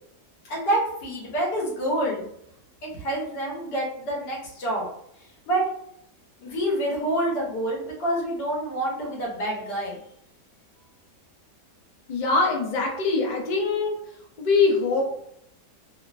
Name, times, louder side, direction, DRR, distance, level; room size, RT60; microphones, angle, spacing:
voice 1, 0.5-2.3 2.8-4.8 5.5-5.6 6.4-10.0, right 1 dB, 80° left, -4 dB, 1.6 m, -27 dB
voice 2, 12.1-13.9 14.4-15.0, left 4 dB, 65° left, -1 dB, 0.4 m, -23 dB
3.4 x 2.0 x 2.5 m, 0.75 s
omnidirectional pair, 1.8 m